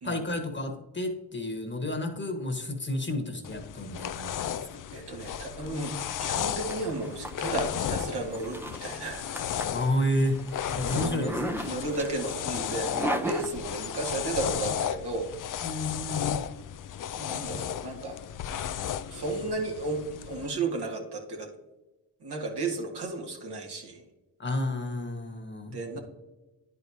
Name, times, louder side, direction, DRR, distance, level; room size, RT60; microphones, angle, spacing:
voice 1, 0.0-4.7 9.7-11.7 15.6-16.4 24.4-26.0, left 1 dB, 25° left, 4 dB, 1.5 m, -31 dB
sound 1, 3.4-20.5, left 9 dB, 45° left, 0.5 m, -34 dB
voice 2, 4.9-9.4 10.9-11.4 11.6-15.3 17.2-18.2 19.1-21.5 22.2-24.0 25.7-26.0, right 2 dB, 60° right, 0 dB, 1.8 m, -33 dB
Zipper (clothing), 5.5-14.2, equal, 5° right, 0.8 m, -38 dB
10.0 x 4.8 x 2.9 m, 1.1 s
hypercardioid pair, 45°, 45 cm